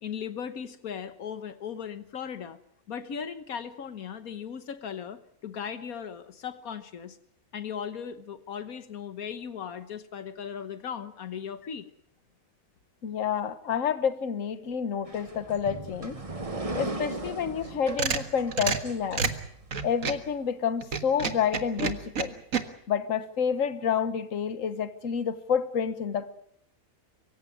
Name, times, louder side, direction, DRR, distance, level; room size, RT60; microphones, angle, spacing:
voice 1, 0.0-2.6 2.9-7.2 7.5-11.8, left 7 dB, 80° left, 11 dB, 1.6 m, -37 dB
voice 2, 13.0-16.2 16.8-19.3 19.8-22.3 22.9-26.3, left 7 dB, 65° left, 12 dB, 1.6 m, -29 dB
sound 1, 15.0-19.7, right 2 dB, 25° right, 1.6 m, -37 dB
sound 2, 17.6-20.3 20.8-22.6, right 5 dB, 70° right, 1.9 m, -30 dB
24.0 x 15.5 x 9.6 m, 0.71 s
omnidirectional pair, 1.5 m